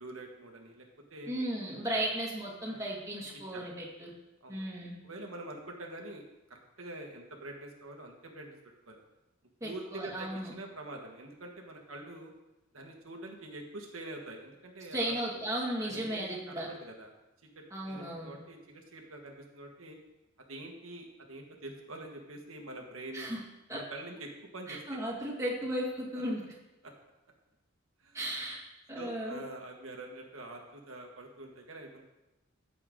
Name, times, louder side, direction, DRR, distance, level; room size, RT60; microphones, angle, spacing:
voice 1, 0.0-1.3 1.9-2.1 2.6-2.9 3.5-3.7 4.4-4.7 5.0-6.2 6.5-8.6 8.9-9.0 9.6-12.3 12.7-15.2 15.8-17.1 17.5-20.0 20.4-23.3 23.7-25.0 26.8-26.9 28.0-28.4 28.9-32.1, right 2 dB, 80° right, 1 dB, 1.6 m, -45 dB
voice 2, 1.3-4.1 4.5-5.0 9.6-10.5 14.9-16.7 17.7-18.4 23.1-23.4 23.7-23.8 24.7-26.4 28.1-28.6 28.9-29.4, right 1 dB, 15° right, -4 dB, 2.1 m, -35 dB
15.0 x 6.9 x 3.8 m, 0.98 s
head